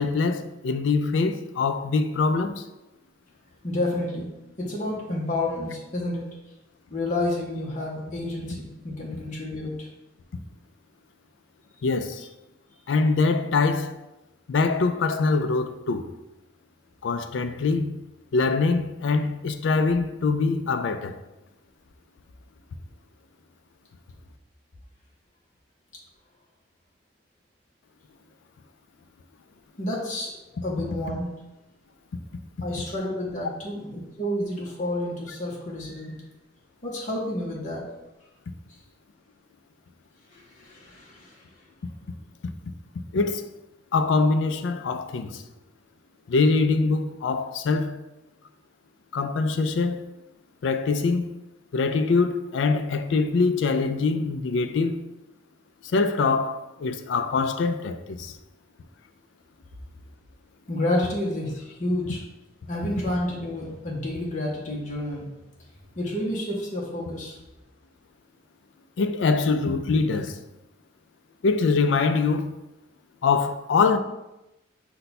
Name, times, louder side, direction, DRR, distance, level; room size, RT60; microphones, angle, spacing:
voice 1, 0.0-2.7 11.8-12.3 12.9-14.0 14.5-16.1 17.0-18.0 18.3-21.2 43.1-43.4 43.9-45.4 46.3-48.0 49.1-50.1 50.6-51.3 51.7-55.0 55.8-58.4 69.0-70.4 71.4-72.5 73.2-74.0, left 4 dB, 75° left, 0.4 m, -23 dB
voice 2, 3.6-4.3 4.6-6.3 6.9-9.9 29.8-30.3 30.6-31.3 32.6-36.2 36.8-37.8 40.3-41.4 60.7-62.2 62.7-65.3 66.0-67.3, left 1 dB, 40° left, 0.8 m, -30 dB
5.4 x 2.2 x 4.0 m
head